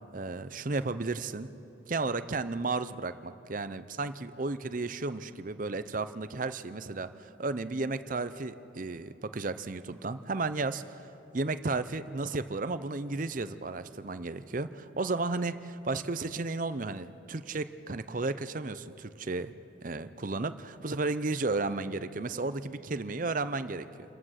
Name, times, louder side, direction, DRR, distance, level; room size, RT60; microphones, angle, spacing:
voice 1, 0.1-1.5 1.9-11.1 11.3-19.5 19.8-23.9, right 3 dB, 40° right, 12 dB, 0.6 m, -33 dB
27.5 x 15.0 x 6.5 m, 2.9 s
head